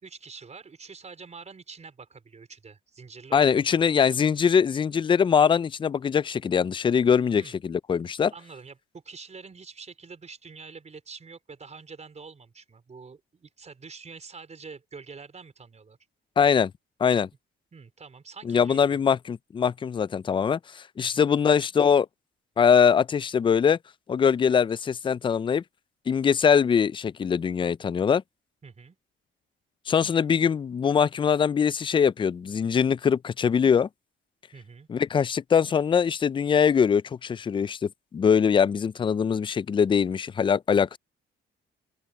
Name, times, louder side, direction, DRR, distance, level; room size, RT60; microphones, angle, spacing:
voice 1, 0.0-3.9 7.3-7.6 8.3-16.0 17.7-19.0 21.0-21.3 28.6-29.0 34.5-34.9, right 5 dB, 35° right, 4.6 m, -46 dB
voice 2, 3.3-8.3 16.4-16.7 17.0-17.3 18.5-22.1 22.6-23.8 24.1-25.6 26.1-28.2 29.9-33.9 34.9-41.0, left 7 dB, 25° left, 0.3 m, -22 dB
open air
cardioid pair, 90°, 20 cm